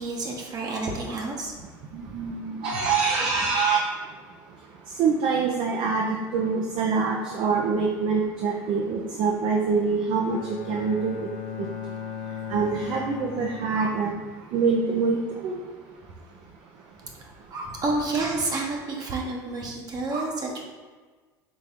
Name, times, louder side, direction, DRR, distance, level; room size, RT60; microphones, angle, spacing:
voice 1, 0.0-1.5 13.7-13.9 17.5-20.6, right 2 dB, 40° right, 0 dB, 1.0 m, -29 dB
voice 2, 1.9-3.8 5.0-11.3 11.6-11.7 12.5-14.1 14.5-15.6, right 5 dB, 55° right, 0 dB, 0.6 m, -25 dB
Bowed string instrument, 10.3-14.4, left 7 dB, 60° left, 0.6 m, -37 dB
4.2 x 3.4 x 3.6 m, 1.4 s
hypercardioid pair, 80°, 10 cm